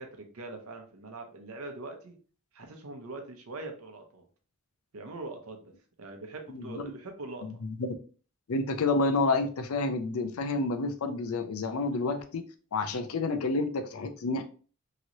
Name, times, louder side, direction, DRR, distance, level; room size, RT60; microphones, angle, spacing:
voice 1, 0.0-2.2 2.5-4.2 4.9-5.7 6.0-7.4, right 2 dB, 75° right, 4 dB, 0.7 m, -42 dB
voice 2, 6.5-6.9 7.4-7.9 8.5-12.4 12.7-14.4, left 3 dB, 75° left, 8 dB, 0.5 m, -29 dB
3.0 x 2.9 x 2.6 m, 0.39 s
head